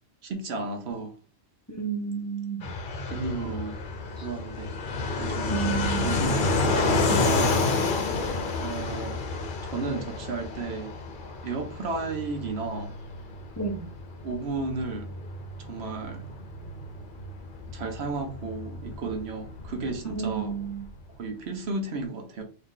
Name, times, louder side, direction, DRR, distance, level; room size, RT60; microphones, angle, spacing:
voice 1, 0.2-1.1 3.1-3.8 4.2-4.7 5.2-5.6 6.0-8.2 8.6-9.2 9.6-10.9 11.4-12.9 14.2-15.1 15.6-16.2 17.7-20.7 21.2-22.4, right 3 dB, 60° right, 1.2 m, -33 dB
voice 2, 1.7-2.7 4.2-4.3 5.5-6.1 7.1-7.3 13.6-13.9 20.1-20.8, right 6 dB, 15° left, 0.7 m, -31 dB
Fixed-wing aircraft airplane, 2.6-21.0, left 3 dB, 50° left, 0.7 m, -30 dB
3.9 x 2.8 x 3.8 m
omnidirectional pair, 1.2 m